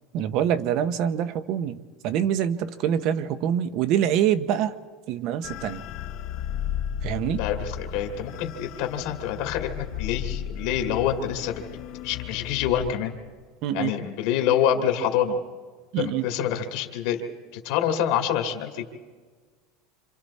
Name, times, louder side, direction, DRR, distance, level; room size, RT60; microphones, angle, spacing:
voice 1, 0.1-1.8 2.0-4.7 5.1-5.8 7.0-7.4 13.6-13.9 15.9-16.3, right 9 dB, 45° right, 13 dB, 0.9 m, -25 dB
sound 1, 5.4-12.9, left 9 dB, 45° left, 0.8 m, -34 dB
voice 2, 7.4-11.6 12.0-13.2 13.7-15.4 16.0-17.2 17.6-18.8, left 9 dB, 60° left, 3 dB, 2.1 m, -26 dB
27.0 x 26.5 x 4.2 m, 1.5 s
supercardioid pair, 165°, 0 cm